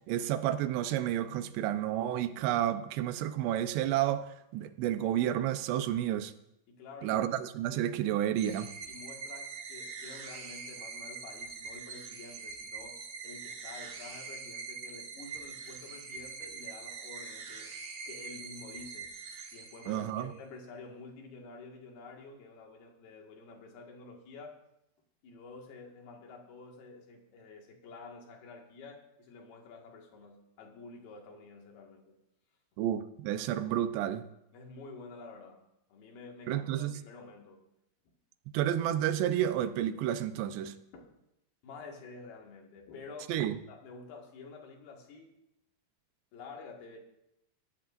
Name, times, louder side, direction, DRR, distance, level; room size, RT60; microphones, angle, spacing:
voice 1, 0.1-4.3 4.5-6.3 7.0-8.7 19.9-20.3 32.8-34.3 36.5-36.9 38.5-40.8 43.3-43.6, right 11 dB, 90° right, 10 dB, 2.9 m, -30 dB
voice 2, 6.7-7.2 8.9-17.7 18.1-19.1 19.5-24.6 25.2-32.2 34.5-35.6 35.9-37.7 38.1-38.2 40.9-41.1 41.6-45.3 46.3-47.0, left 3 dB, 65° left, 1 dB, 3.6 m, -49 dB
sound 1, 8.4-20.3, right 5 dB, 65° right, 1.3 m, -44 dB
19.0 x 14.5 x 2.6 m, 0.83 s
omnidirectional pair, 4.8 m